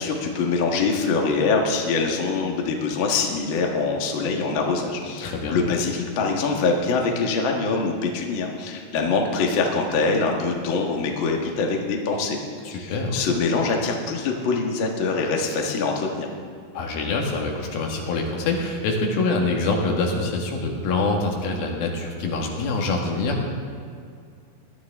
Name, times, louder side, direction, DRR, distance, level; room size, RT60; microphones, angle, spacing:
voice 1, 0.0-12.4 12.7-16.3, left 4 dB, 50° left, 1 dB, 1.6 m, -24 dB
voice 2, 5.2-5.6 12.6-13.2 16.7-23.5, left 3 dB, 85° left, 0 dB, 3.6 m, -25 dB
20.0 x 12.5 x 3.6 m, 2.3 s
omnidirectional pair, 4.2 m